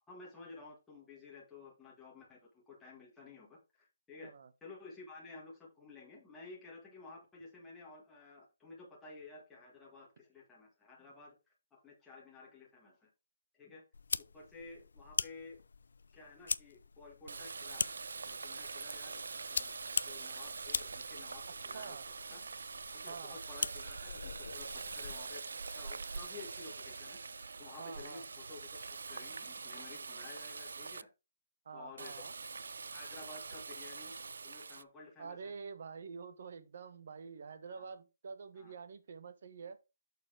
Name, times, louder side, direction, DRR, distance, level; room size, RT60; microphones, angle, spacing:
voice 1, 0.1-4.3 4.6-13.1 13.5-13.8 14.3-15.6 16.1-17.9 18.2-19.2 19.5-19.7 20.0-22.0 22.3-22.4 22.9-31.1 31.7-32.2 32.9-34.2 34.4-35.5 37.7-37.9 38.5-38.7, left 3 dB, 5° left, 1.5 m, -53 dB
sound 1, 13.9-25.3, left 4 dB, 75° left, 0.3 m, -42 dB
Water tap faucet, 17.3-31.0 32.0-34.8, right 4 dB, 90° right, 0.3 m, -44 dB
voice 2, 21.7-22.0 23.1-23.4 27.8-28.2 31.7-32.3 35.2-39.8, right 5 dB, 45° right, 0.9 m, -47 dB
6.7 x 4.2 x 4.9 m
hypercardioid pair, 180°, 0 cm